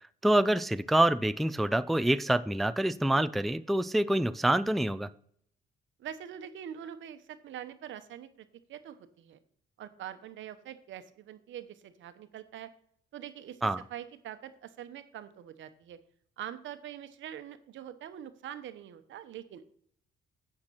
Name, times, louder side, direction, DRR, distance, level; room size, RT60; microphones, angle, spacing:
voice 1, 0.2-5.1 13.6-13.8, right 1 dB, ahead, 13 dB, 0.3 m, -26 dB
voice 2, 6.0-9.4 9.8-12.7 13.1-16.0 16.4-19.7, right 10 dB, 75° right, 11 dB, 1.0 m, -44 dB
8.9 x 5.9 x 5.8 m, 0.63 s
cardioid pair, 90°, 20 cm